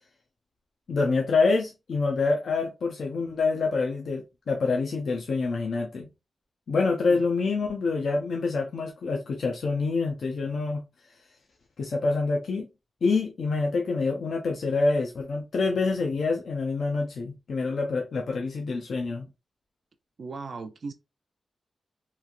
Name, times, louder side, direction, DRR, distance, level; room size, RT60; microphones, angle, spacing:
voice 1, 0.9-6.1 6.7-10.8 11.8-12.7 13.0-19.3, left 4 dB, 65° left, 0.5 m, -26 dB
voice 2, 20.2-20.9, right 4 dB, 45° right, 0.3 m, -38 dB
3.1 x 2.3 x 2.5 m
wide cardioid pair, 165°, 0 cm